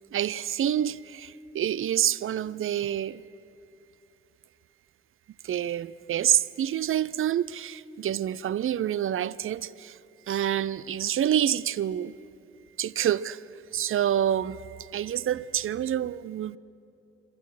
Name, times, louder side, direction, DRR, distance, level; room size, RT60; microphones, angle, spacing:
voice 1, 0.1-3.2 5.4-10.0 10.3-12.1 12.8-13.4 13.7-16.6, right 10 dB, 40° right, 0.6 m, -27 dB
25.5 x 23.5 x 6.4 m
figure-of-eight pair, 45°, 31 cm